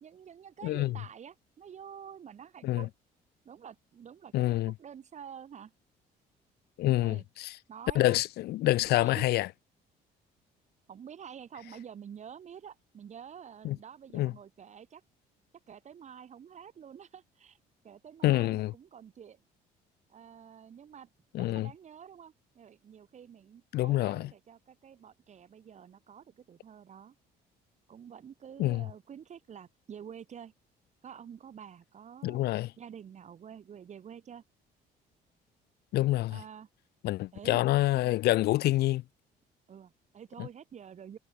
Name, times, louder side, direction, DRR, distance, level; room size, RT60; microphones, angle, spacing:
voice 1, 0.0-2.9 3.4-5.7 7.0-7.3 7.7-8.2 9.0-9.4 10.9-15.0 15.7-17.6 17.8-19.4 20.1-21.1 21.4-27.1 27.9-30.5 31.0-32.4 32.8-34.4 36.3-36.7 37.3-37.6 38.0-38.2 39.7-41.2, right 8 dB, 45° right, 2.0 m, -48 dB
voice 2, 0.6-0.9 2.6-2.9 4.3-4.7 6.8-7.5 8.0-9.5 13.6-13.8 14.1-14.3 18.2-18.7 21.3-21.7 23.7-24.3 28.6-28.8 32.2-32.7 35.9-36.4 37.0-39.0, left 16 dB, 70° left, 0.8 m, -27 dB
cardioid pair, 110°, 17 cm